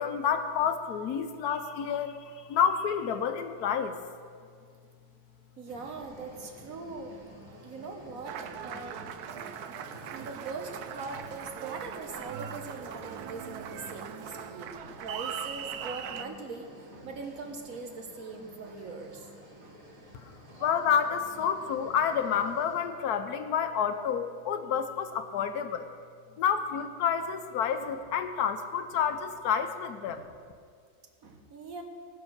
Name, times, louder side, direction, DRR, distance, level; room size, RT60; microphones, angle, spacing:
voice 1, 0.0-4.0 20.1-20.3 20.6-25.9 26.4-30.2, left 7 dB, 85° left, 9 dB, 1.3 m, -29 dB
voice 2, 5.6-7.1 7.6-9.0 10.1-19.3 19.6-19.7 30.1-30.2 31.2-31.8, right 3 dB, 65° right, 3 dB, 1.7 m, -41 dB
sound 1, 5.7-22.9, right 1 dB, 25° right, 1.5 m, -51 dB
Applause, 8.2-16.3, right 9 dB, 85° right, 1.2 m, -40 dB
18.5 x 6.2 x 6.4 m, 2.1 s
omnidirectional pair, 1.6 m